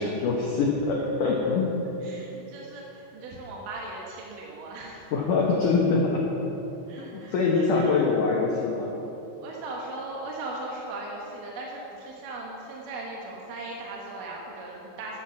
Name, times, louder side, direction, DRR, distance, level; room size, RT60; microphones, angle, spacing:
voice 1, 0.0-1.7 5.1-6.2 7.1-8.9, left 4 dB, 80° left, -1 dB, 1.8 m, -24 dB
voice 2, 2.0-5.1 6.9-8.0 9.4-15.2, right 2 dB, 65° right, -2 dB, 2.3 m, -38 dB
12.5 x 9.0 x 7.1 m, 2.9 s
omnidirectional pair, 5.3 m